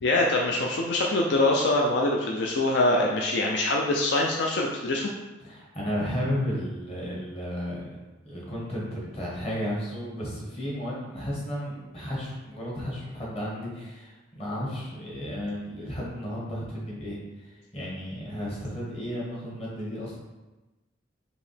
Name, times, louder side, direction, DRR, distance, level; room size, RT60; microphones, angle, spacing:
voice 1, 0.0-5.1, left 2 dB, 60° left, -1 dB, 0.4 m, -24 dB
voice 2, 5.4-7.8 8.2-20.2, equal, 30° left, -5 dB, 1.2 m, -33 dB
5.1 x 2.8 x 3.3 m, 1.1 s
head